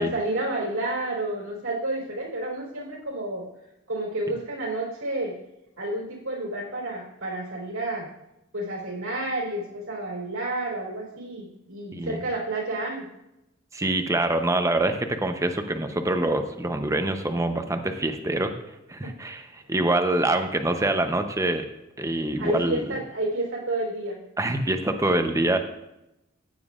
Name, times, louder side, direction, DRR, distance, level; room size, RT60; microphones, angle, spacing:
voice 1, 0.0-3.5 3.9-5.4 5.8-8.1 8.5-13.1 19.0-19.1 22.4-24.2 25.5-25.6, right 1 dB, 85° right, -2 dB, 3.7 m, -30 dB
voice 2, 11.9-12.2 13.7-18.5 18.9-21.6 22.0-22.8 24.4-25.6, right 2 dB, 15° right, 7 dB, 0.7 m, -25 dB
14.5 x 9.2 x 2.5 m, 0.90 s
head